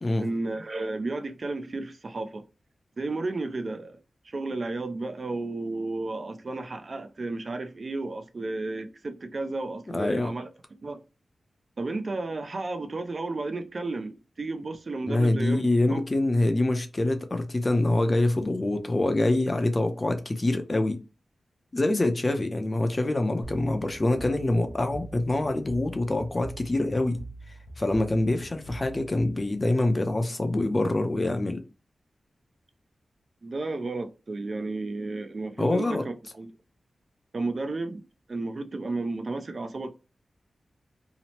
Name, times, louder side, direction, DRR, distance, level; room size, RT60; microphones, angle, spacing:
voice 1, 0.2-2.4 3.0-4.0 4.2-10.5 10.8-11.0 11.8-16.0 33.4-36.5 37.3-38.0 38.3-39.9, right 2 dB, 50° right, 0.4 m, -33 dB
voice 2, 9.9-10.3 15.1-21.0 21.7-27.2 27.8-31.6 35.6-36.0, left 2 dB, 30° left, 0.5 m, -25 dB
sound 1, 23.4-30.0, right 1 dB, 85° left, 0.4 m, -44 dB
2.8 x 2.0 x 2.9 m
wide cardioid pair, 95°, 0 cm